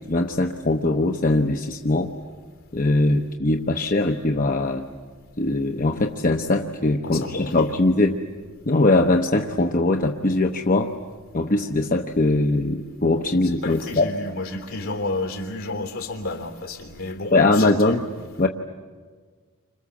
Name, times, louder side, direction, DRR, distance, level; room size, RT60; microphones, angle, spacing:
voice 1, 0.0-2.1 2.7-4.9 5.4-8.2 8.7-10.9 11.3-14.1 17.3-18.1 18.4-18.5, left 2 dB, 40° left, 3 dB, 1.0 m, -21 dB
voice 2, 7.0-7.8 13.4-18.0, left 2 dB, 70° left, 5 dB, 3.3 m, -31 dB
29.5 x 26.5 x 7.3 m, 1.5 s
head